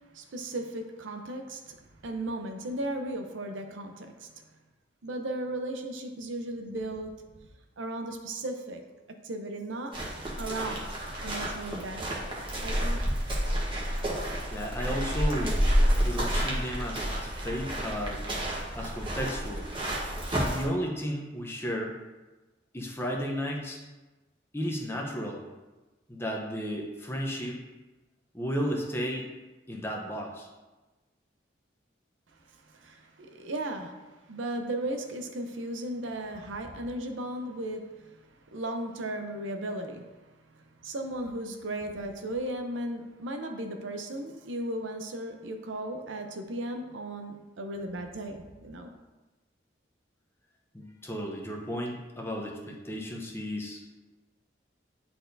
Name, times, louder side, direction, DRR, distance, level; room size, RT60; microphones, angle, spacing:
voice 1, 0.1-1.8 2.0-4.3 5.0-7.1 7.8-8.8 9.2-9.9 10.4-10.9 11.2-12.1 12.6-13.0 32.7-34.0 34.3-38.1 38.5-40.0 40.8-48.9, right 1 dB, 85° right, 5 dB, 0.7 m, -36 dB
sound 1, 9.9-20.7, equal, 25° right, 1.1 m, -30 dB
voice 2, 14.5-15.6 16.0-18.2 18.7-19.7 20.4-22.0 22.7-23.8 24.5-25.4 26.1-27.6 28.3-29.3 29.7-30.5 50.7-53.8, equal, 15° left, 0 dB, 0.8 m, -33 dB
9.7 x 4.3 x 2.7 m, 1.2 s
head